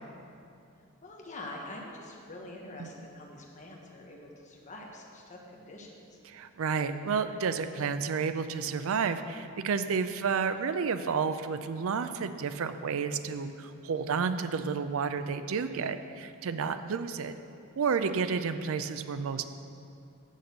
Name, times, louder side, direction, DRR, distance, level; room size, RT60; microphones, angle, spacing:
voice 1, 1.0-6.2 16.6-16.9, left 2 dB, 35° left, -1 dB, 1.1 m, -45 dB
voice 2, 6.3-17.3 17.8-19.5, right 5 dB, 65° right, 10 dB, 0.4 m, -31 dB
6.9 x 6.4 x 6.7 m, 2.5 s
head